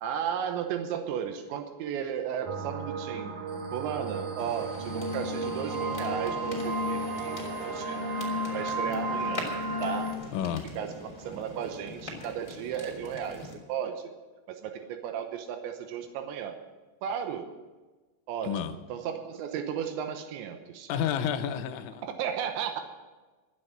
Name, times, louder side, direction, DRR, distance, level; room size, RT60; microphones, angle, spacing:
voice 1, 0.0-3.3 3.7-8.0 8.5-9.5 9.8-10.1 10.8-14.1 14.5-16.6 17.0-17.5 18.3-20.9 22.0-22.8, right 8 dB, 90° right, 7 dB, 3.2 m, -34 dB
sound 1, 2.4-10.1, right 1 dB, 65° right, 1.6 m, -33 dB
sound 2, 4.4-13.5, left 2 dB, 10° left, 2.3 m, -43 dB
voice 2, 10.3-10.7 18.4-18.7 20.9-22.0, left 8 dB, 85° left, 9 dB, 3.2 m, -30 dB
12.5 x 8.9 x 8.9 m, 1.2 s
omnidirectional pair, 5.2 m